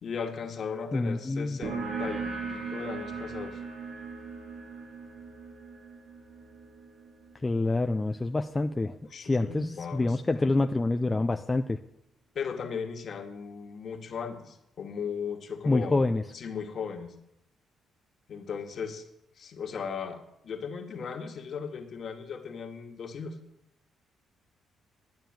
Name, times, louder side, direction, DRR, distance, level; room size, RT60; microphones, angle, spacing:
voice 1, 0.0-3.6 9.1-10.7 12.3-17.1 18.3-19.1 19.4-23.4, left 6 dB, 55° left, 4 dB, 2.1 m, -37 dB
voice 2, 0.9-1.6 7.4-9.0 9.2-11.8 15.6-16.2, left 2 dB, 20° left, 6 dB, 0.6 m, -27 dB
sound 1, 1.6-8.9, right 4 dB, 70° right, 2.8 m, -39 dB
11.5 x 9.2 x 9.0 m, 0.81 s
cardioid pair, 90°, 0 cm